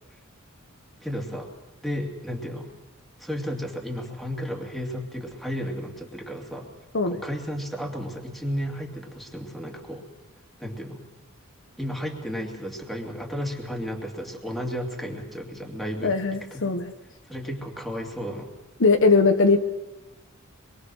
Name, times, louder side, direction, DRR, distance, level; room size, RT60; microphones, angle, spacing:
voice 1, 1.0-1.5 1.8-2.7 3.2-6.7 7.1-10.0 10.6-11.0 11.8-16.8 17.3-18.5, equal, ahead, 1 dB, 2.7 m, -33 dB
voice 2, 16.0-16.9 18.8-19.6, left 3 dB, 60° left, 7 dB, 1.2 m, -20 dB
25.5 x 22.5 x 6.5 m, 1.1 s
head